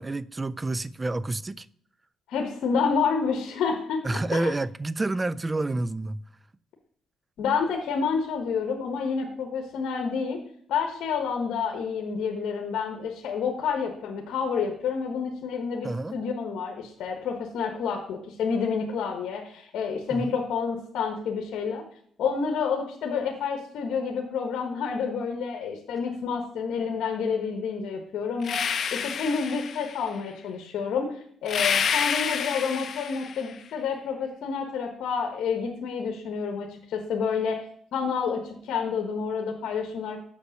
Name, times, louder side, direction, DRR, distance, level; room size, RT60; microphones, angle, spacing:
voice 1, 0.0-1.7 4.0-6.3 15.8-16.2 20.1-20.3, right 2 dB, 20° right, 0.3 m, -29 dB
voice 2, 2.3-4.5 7.4-10.4 10.7-21.8 22.2-37.6 37.9-40.2, left 6 dB, 75° left, 1.2 m, -29 dB
sound 1, 28.4-30.1 31.5-33.5, left 7 dB, 55° left, 0.6 m, -28 dB
6.7 x 5.3 x 6.3 m
cardioid pair, 90°, 0 cm